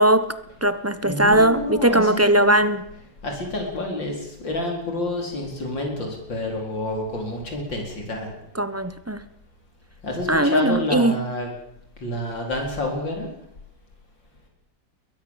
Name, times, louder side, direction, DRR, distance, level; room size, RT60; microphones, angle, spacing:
voice 1, 0.0-2.8 8.5-9.2 10.3-11.2, right 1 dB, 15° right, 13 dB, 0.6 m, -19 dB
voice 2, 1.0-2.7 3.2-8.3 10.0-11.5 12.0-13.3, left 2 dB, 75° left, 2 dB, 5.0 m, -29 dB
22.0 x 19.0 x 7.3 m, 0.77 s
omnidirectional pair, 2.0 m